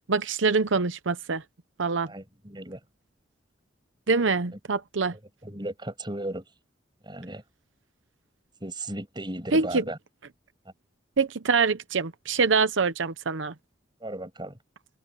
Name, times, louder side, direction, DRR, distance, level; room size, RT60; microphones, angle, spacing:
voice 1, 0.1-1.4 1.8-2.1 4.1-5.1 9.5-9.8 11.2-13.5, right 4 dB, 85° right, 0.8 m, -24 dB
voice 2, 2.0-2.8 5.1-6.4 7.0-7.4 8.6-10.0 14.0-14.6, right 1 dB, 25° right, 7.6 m, -36 dB
head